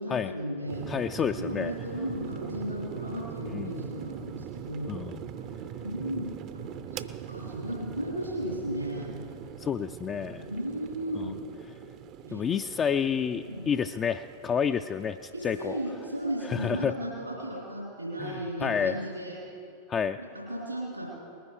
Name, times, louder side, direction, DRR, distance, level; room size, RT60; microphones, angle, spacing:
voice 1, 0.0-0.9 1.4-5.0 5.4-9.2 10.4-11.4 12.2-12.5 13.3-13.7 15.3-19.4 20.2-21.1, right 1 dB, 90° right, -4 dB, 3.7 m, -35 dB
sound 1, 0.7-16.9, right 9 dB, 40° right, 0.5 m, -42 dB
voice 2, 0.9-1.7 3.5-3.7 4.9-5.2 9.6-10.5 11.2-11.3 12.3-15.8 16.4-16.9 18.2-19.0 19.9-20.2, left 7 dB, 25° left, 7 dB, 0.3 m, -29 dB
20.0 x 10.0 x 4.8 m, 2.6 s
figure-of-eight pair, 90°, 0 cm